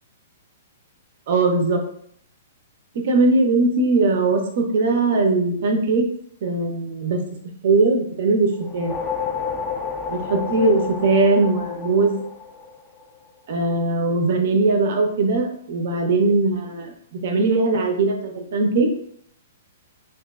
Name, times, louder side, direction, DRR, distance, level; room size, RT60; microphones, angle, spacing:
voice 1, 1.3-1.8 3.0-6.1 6.4-7.2 7.6-8.9 10.1-12.2 13.5-18.9, right 3 dB, 55° right, 3 dB, 0.6 m, -20 dB
sound 1, 8.6-13.2, left 6 dB, 20° left, 0.4 m, -30 dB
2.8 x 2.5 x 2.3 m, 0.64 s
figure-of-eight pair, 115°, 0 cm